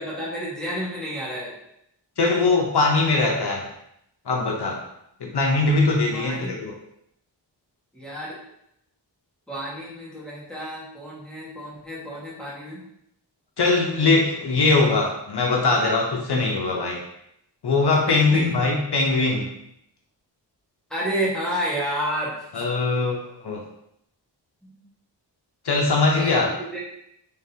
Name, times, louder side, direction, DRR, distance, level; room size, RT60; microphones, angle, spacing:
voice 1, 0.0-1.5 6.1-6.5 7.9-8.4 9.5-12.9 14.0-14.1 17.9-18.5 20.9-22.6 24.6-24.8 26.1-26.8, equal, ahead, -7 dB, 1.4 m, -30 dB
voice 2, 2.2-3.7 4.3-4.8 5.2-6.7 13.6-17.0 17.6-19.5 22.5-23.6 25.6-26.5, left 3 dB, 65° left, 0 dB, 0.7 m, -21 dB
3.7 x 3.6 x 2.7 m, 0.77 s
wide cardioid pair, 85°, 42 cm